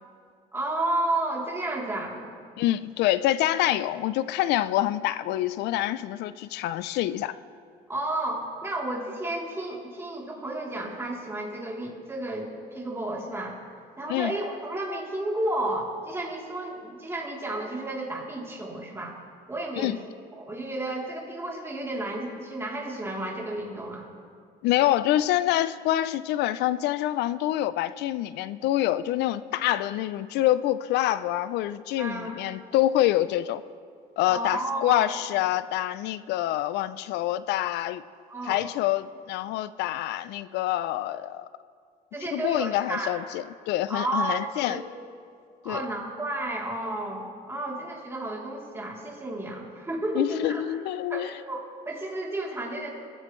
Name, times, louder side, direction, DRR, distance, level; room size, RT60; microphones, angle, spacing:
voice 1, 0.5-2.2 7.9-13.6 14.0-19.2 19.5-20.0 20.3-24.1 32.0-32.3 34.3-35.1 38.3-38.7 42.1-43.2 43.9-44.9 45.6-50.6 51.1-52.9, right 1 dB, 15° right, -3 dB, 3.1 m, -32 dB
voice 2, 2.6-7.3 14.1-14.3 19.8-20.0 24.6-33.6 34.2-38.0 38.4-41.5 42.3-44.8 45.7-45.8 50.2-51.3, left 14 dB, 85° left, 15 dB, 0.4 m, -26 dB
22.0 x 13.5 x 3.1 m, 2.2 s
cardioid pair, 110°, 17 cm